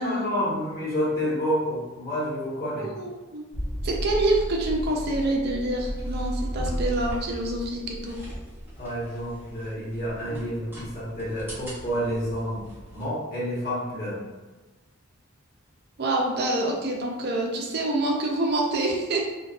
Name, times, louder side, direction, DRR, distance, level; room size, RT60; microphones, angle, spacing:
voice 1, 0.0-2.9 8.8-12.6 12.9-14.2, equal, 45° left, -9 dB, 1.0 m, -29 dB
voice 2, 2.8-3.4 3.8-8.2 16.0-19.3, right 2 dB, 50° right, 0 dB, 0.4 m, -26 dB
sound 1, 3.5-13.1, equal, 10° right, 0.6 m, -35 dB
2.5 x 2.2 x 2.3 m, 1.2 s
head